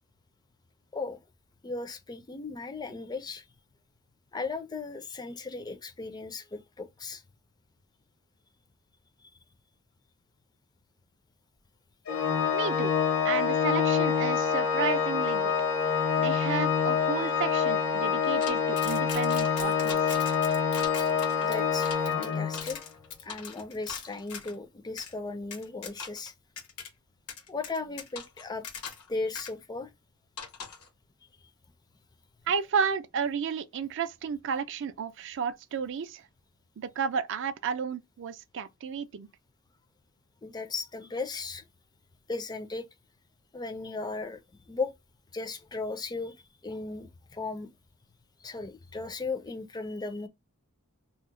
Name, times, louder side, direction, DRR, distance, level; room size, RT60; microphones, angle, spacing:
voice 1, 1.6-3.4 4.3-7.2 17.2-17.3 18.1-18.2 21.4-22.8 23.2-26.3 27.5-28.6 29.1-29.9 40.4-41.6 42.3-42.9 43.5-44.4 44.7-44.9 45.3-46.3 46.6-47.7 48.4-50.3, left 3 dB, 20° left, 0.4 m, -36 dB
Organ, 12.1-22.8, left 6 dB, 65° left, 0.7 m, -26 dB
voice 2, 12.5-12.9 13.2-15.6 16.2-20.2 32.5-36.2 36.8-39.3, right 6 dB, 55° right, 0.4 m, -32 dB
sound 1, 18.4-24.5 25.0-25.1 25.5-26.3 26.6-26.9 27.3-29.1 29.3-29.5 30.4-30.9, left 6 dB, 90° left, 0.9 m, -41 dB
2.8 x 2.0 x 3.6 m
head